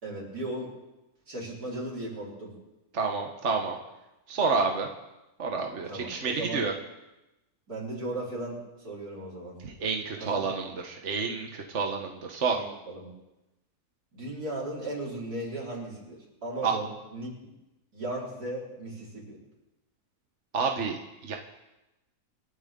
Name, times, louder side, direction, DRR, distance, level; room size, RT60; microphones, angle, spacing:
voice 1, 0.0-0.7 1.3-2.5 5.9-6.7 7.7-9.6 10.2-10.5 12.5-13.1 14.1-17.5 17.9-19.4, right 1 dB, 80° right, -5 dB, 5.3 m, -36 dB
voice 2, 2.9-3.8 4.3-4.9 5.4-6.7 9.6-12.6 16.6-16.8 20.5-21.4, right 4 dB, 50° right, 2 dB, 1.5 m, -29 dB
28.0 x 12.5 x 3.8 m, 0.98 s
omnidirectional pair, 1.6 m